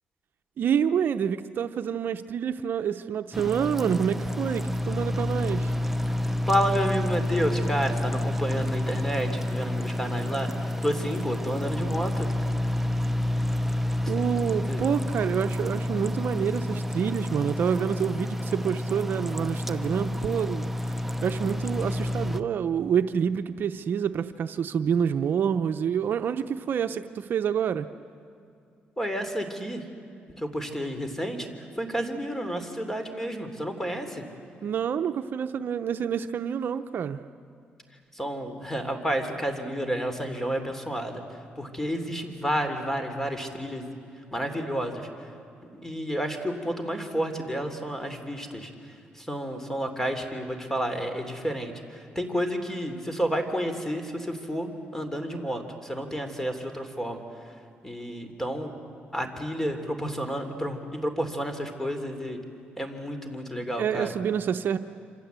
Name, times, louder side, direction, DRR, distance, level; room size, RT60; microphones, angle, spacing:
voice 1, 0.6-5.7 14.1-21.0 21.2-27.9 34.6-37.2 63.8-64.8, right 8 dB, 60° right, 9 dB, 0.7 m, -27 dB
sound 1, 3.3-22.4, left 1 dB, 5° right, 0.9 m, -29 dB
voice 2, 6.5-12.3 14.7-14.8 29.0-29.8 30.4-31.5 31.8-34.2 38.1-41.2 41.6-43.9 44.3-45.3 45.8-57.5 57.8-58.7 59.1-62.4 62.8-64.1, equal, 10° left, 7 dB, 3.1 m, -30 dB
27.0 x 26.0 x 8.2 m, 2.5 s
cardioid pair, 100°, 4 cm